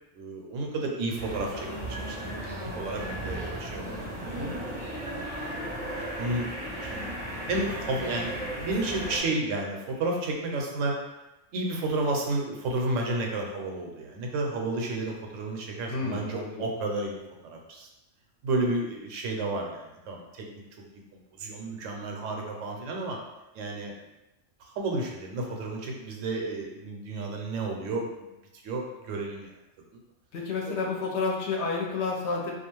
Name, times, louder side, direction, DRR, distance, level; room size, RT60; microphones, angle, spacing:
voice 1, 0.1-5.1 6.2-6.5 6.8-10.9 11.5-17.9 18.4-20.5 21.1-23.2 23.5-24.0 24.6-28.3 28.5-29.5 30.7-30.8, right 2 dB, 85° right, 1 dB, 0.9 m, -32 dB
sound 1, 1.2-9.2, right 1 dB, 40° right, 0.5 m, -35 dB
voice 2, 15.9-16.6 30.3-32.5, left 4 dB, 70° left, -1 dB, 0.8 m, -30 dB
2.4 x 2.3 x 3.0 m, 1.0 s
omnidirectional pair, 1.3 m